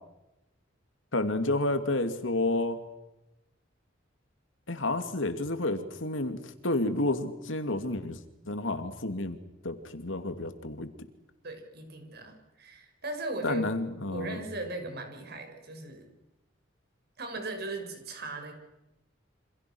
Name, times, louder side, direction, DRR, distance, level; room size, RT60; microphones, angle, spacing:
voice 1, 1.1-2.8 4.7-8.2 8.5-9.4 9.6-10.9 13.4-14.4, left 2 dB, 90° left, 8 dB, 2.7 m, -30 dB
voice 2, 11.4-13.7 14.1-16.1 17.2-18.5, right 2 dB, 55° right, 5 dB, 6.5 m, -38 dB
29.0 x 26.5 x 6.3 m, 0.95 s
head